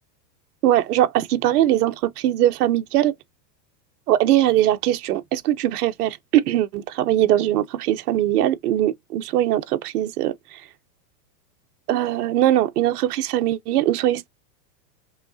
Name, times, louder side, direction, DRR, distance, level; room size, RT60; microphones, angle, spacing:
voice 1, 0.6-3.1 4.1-10.6 11.9-14.3, right 13 dB, 65° right, 0.9 m, -21 dB
5.3 x 3.2 x 2.6 m
supercardioid pair, 165°, 49 cm